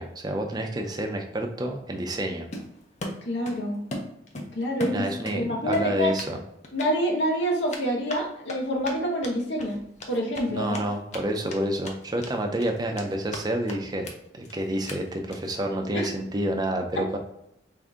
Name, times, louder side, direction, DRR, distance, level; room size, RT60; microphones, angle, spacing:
voice 1, 0.0-2.5 4.9-6.4 10.5-14.1 14.3-17.2, right 1 dB, 20° right, 3 dB, 0.5 m, -29 dB
Run, 2.5-3.6 3.9-5.4 5.7-6.3 6.6-6.9 7.7-11.2 11.5-11.6 11.8-12.3 12.6-13.4 13.7-13.8 14.0-14.1 14.4-14.5 14.9-15.0 15.3-15.5, left 1 dB, 40° left, 0.6 m, -37 dB
voice 2, 3.2-3.8 4.5-5.1 5.3-6.1 6.7-9.8 10.1-10.8 15.9-16.1, equal, 75° left, 0 dB, 0.9 m, -27 dB
3.7 x 2.6 x 3.5 m, 0.79 s
head